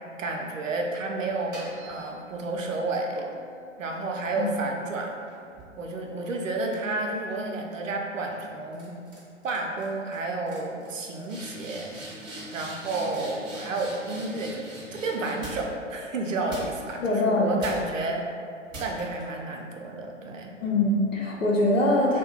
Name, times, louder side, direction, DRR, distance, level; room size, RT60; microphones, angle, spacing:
voice 1, 0.2-3.2 3.8-5.1 5.8-8.9 9.4-11.9 12.5-18.3 18.8-20.5, right 2 dB, 85° right, 1 dB, 0.5 m, -31 dB
sound 1, 1.3-2.5 3.2-6.7 7.1-7.5 8.2-8.4 8.7-9.2 9.4-9.9 10.1-10.2 10.5-15.9 16.5-17.1 17.6-18.1 18.7-19.2, right 2 dB, 20° right, 0.5 m, -43 dB
voice 2, 17.0-17.6 20.6-22.2, left 1 dB, 85° left, -3 dB, 0.7 m, -23 dB
2.3 x 2.1 x 2.9 m, 2.3 s
figure-of-eight pair, 115°, 38 cm